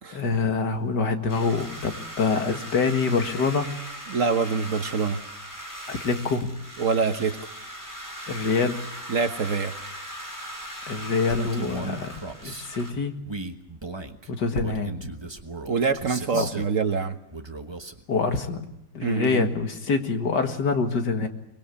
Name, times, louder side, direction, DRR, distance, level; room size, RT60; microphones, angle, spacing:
voice 1, 0.1-3.7 5.9-6.5 8.3-8.8 10.9-13.1 14.3-15.1 16.3-16.5 18.1-18.7 18.9-21.3, left 4 dB, 70° left, 6 dB, 2.4 m, -25 dB
sound 1, 1.3-12.9, equal, 10° left, 3.9 m, -39 dB
voice 2, 4.1-5.2 6.8-7.4 9.1-9.7 15.7-17.1 19.0-19.5, right 5 dB, 50° right, 8 dB, 1.3 m, -25 dB
Male speech man speaking, 11.3-12.7 13.2-16.8 17.3-18.0, right 3 dB, 15° right, 1.1 m, -37 dB
24.0 x 21.0 x 8.5 m, 0.85 s
omnidirectional pair, 1.9 m